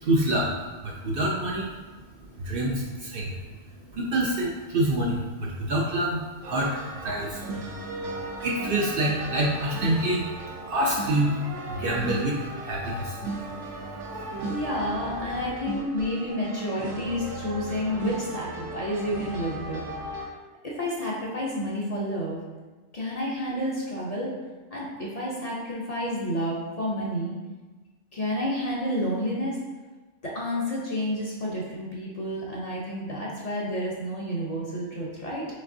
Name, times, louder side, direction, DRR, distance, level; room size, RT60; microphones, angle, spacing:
voice 1, 0.0-0.5 0.8-1.7 2.3-3.4 3.7-7.7 8.1-10.3 10.7-13.2, right 1 dB, 60° right, -2 dB, 0.6 m, -27 dB
sound 1, 6.4-20.3, right 2 dB, 80° right, 1.0 m, -36 dB
voice 2, 14.5-19.8 20.6-22.4 22.9-24.3 24.7-27.3 28.1-29.6 30.2-35.5, equal, 40° left, -5 dB, 0.7 m, -30 dB
5.2 x 3.3 x 2.6 m, 1.3 s
omnidirectional pair, 1.2 m